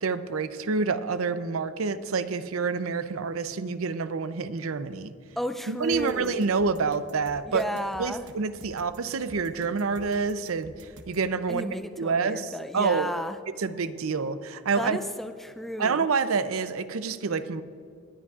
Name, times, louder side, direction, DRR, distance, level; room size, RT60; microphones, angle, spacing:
voice 1, 0.0-5.1 5.7-7.6 8.0-11.7 12.0-13.1 13.6-15.0 15.8-17.6, right 4 dB, 75° right, 12 dB, 0.6 m, -28 dB
voice 2, 5.4-6.5 7.5-8.2 11.5-13.4 14.8-16.1, equal, ahead, 8 dB, 0.3 m, -33 dB
sound 1, 5.9-11.3, right 2 dB, 60° right, 0.9 m, -49 dB
19.5 x 11.0 x 2.4 m, 2.3 s
head